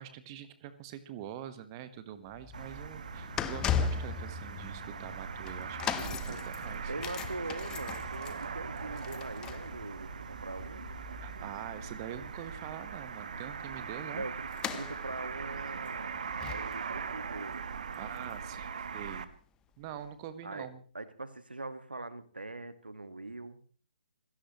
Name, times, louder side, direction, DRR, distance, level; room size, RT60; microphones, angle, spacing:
voice 1, 0.0-6.9 11.2-14.2 17.9-19.3 19.8-20.8, right 10 dB, 25° right, 11 dB, 1.3 m, -44 dB
sound 1, 2.3-18.6 18.9-19.1 19.9-20.0, left 7 dB, 15° left, 0.8 m, -40 dB
sound 2, 2.5-19.3, right 6 dB, 50° right, 1.3 m, -41 dB
voice 2, 6.0-6.4 6.9-10.8 14.1-17.6 20.4-20.7 20.9-23.6, right 2 dB, 75° right, 12 dB, 1.7 m, -42 dB
27.5 x 17.0 x 3.1 m, 0.40 s
figure-of-eight pair, 135°, 5 cm